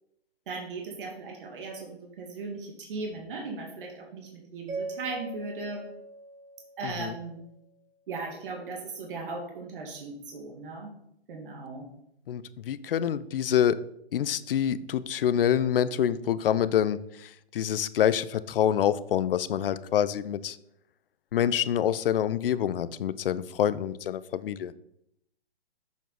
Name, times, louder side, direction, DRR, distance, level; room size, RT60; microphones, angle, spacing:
voice 1, 0.5-5.9 6.8-7.4 8.1-10.9 11.3-11.9, right 3 dB, 55° right, 1.7 m, -37 dB
Mallet percussion, 4.7-7.7, right 3 dB, 10° right, 1.3 m, -41 dB
voice 2, 6.8-7.1 12.3-20.6 21.3-24.7, left 9 dB, 60° left, 0.5 m, -26 dB
7.2 x 4.6 x 3.9 m
hypercardioid pair, 140°, 33 cm